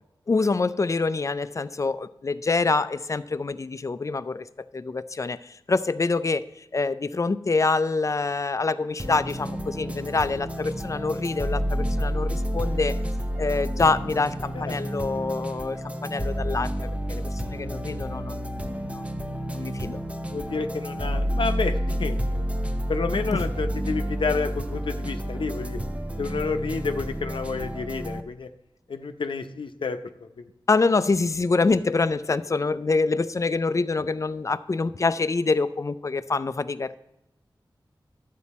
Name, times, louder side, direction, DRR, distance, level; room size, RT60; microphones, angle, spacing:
voice 1, 0.3-13.0 13.4-18.4 18.9-20.0 30.7-37.0, left 3 dB, 40° left, 14 dB, 0.5 m, -26 dB
sound 1, 9.0-28.2, equal, 15° right, 0.8 m, -30 dB
voice 2, 20.3-22.4 22.9-25.8 26.2-28.5 28.9-30.3, left 4 dB, 75° left, 8 dB, 0.7 m, -30 dB
12.0 x 8.4 x 4.2 m, 0.90 s
wide cardioid pair, 90°, 9 cm